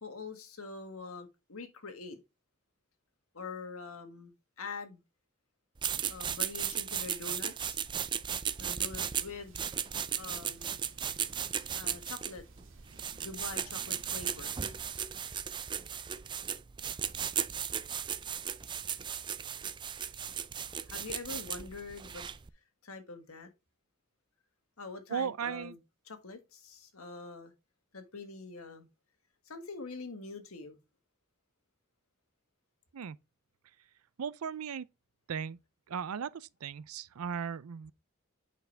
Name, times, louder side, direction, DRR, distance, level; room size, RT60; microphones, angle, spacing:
voice 1, 0.0-2.2 3.3-5.0 6.1-7.8 8.6-9.6 10.2-10.8 11.7-12.4 13.2-14.6 20.9-22.2 22.8-23.5 24.8-25.8 26.1-27.5 27.9-28.9 29.5-30.8, left 4 dB, 85° left, 1.6 m, -44 dB
sound 1, 5.8-22.5, right 8 dB, 20° right, 0.3 m, -36 dB
sound 2, 8.7-14.9, right 2 dB, 65° right, 2.3 m, -58 dB
voice 2, 25.1-25.7 32.9-33.2 34.2-34.9 35.3-35.6 35.9-37.9, right 7 dB, 90° right, 0.5 m, -36 dB
8.4 x 5.8 x 3.4 m
head